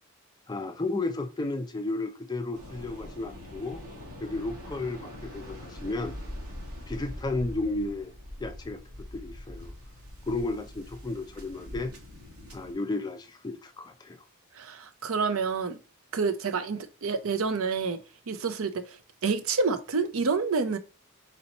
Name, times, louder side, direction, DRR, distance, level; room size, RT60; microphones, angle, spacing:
voice 1, 0.5-3.8 4.2-6.2 6.9-8.1 8.4-8.8 9.1-9.7 10.3-11.9 12.5-14.2, left 2 dB, 20° left, 0.4 m, -33 dB
Waves surf, 2.5-12.7, left 1 dB, 85° right, 1.8 m, -43 dB
voice 2, 14.5-15.8 16.1-20.8, right 4 dB, 70° right, 0.5 m, -28 dB
4.2 x 2.9 x 4.0 m
head